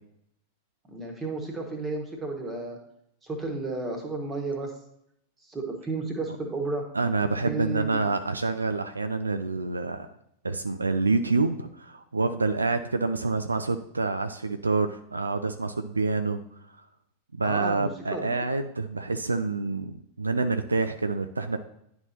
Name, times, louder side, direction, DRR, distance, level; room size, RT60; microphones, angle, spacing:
voice 1, 0.9-2.8 3.2-4.7 5.4-6.9 7.4-8.0 17.4-18.3, right 3 dB, 20° right, 2 dB, 1.5 m, -32 dB
voice 2, 6.9-10.1 10.4-16.4 17.4-21.6, right 3 dB, 80° right, 9 dB, 0.3 m, -27 dB
10.5 x 4.3 x 2.9 m, 0.74 s
figure-of-eight pair, 90°, 0 cm